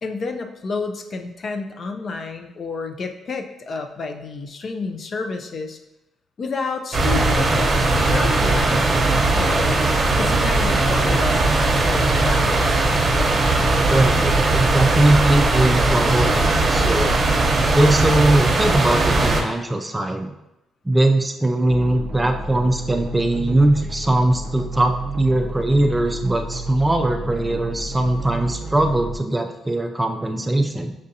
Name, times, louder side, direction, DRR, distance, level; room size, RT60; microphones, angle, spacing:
voice 1, 0.0-5.8 6.4-9.1 9.4-9.9 10.2-12.8, left 4 dB, 50° left, 5 dB, 0.4 m, -30 dB
sound 1, 6.9-19.4, right 2 dB, 35° right, 0.9 m, -19 dB
voice 2, 13.9-17.1 17.7-20.3 20.9-30.9, right 1 dB, 15° right, 4 dB, 0.4 m, -20 dB
sound 2, 21.7-29.2, right 2 dB, 70° right, 0.5 m, -31 dB
6.5 x 2.5 x 2.7 m, 0.91 s
cardioid pair, 90°, 0 cm